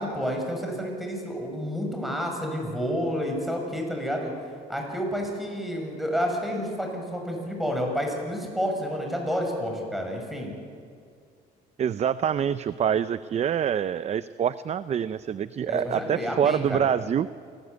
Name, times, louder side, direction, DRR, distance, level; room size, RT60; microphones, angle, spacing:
voice 1, 0.0-4.3 4.7-10.5 15.6-17.0, equal, ahead, 1 dB, 6.9 m, -30 dB
voice 2, 11.8-17.3, right 8 dB, 40° right, 15 dB, 0.6 m, -26 dB
29.0 x 19.5 x 8.3 m, 2.2 s
cardioid pair, 110°, 17 cm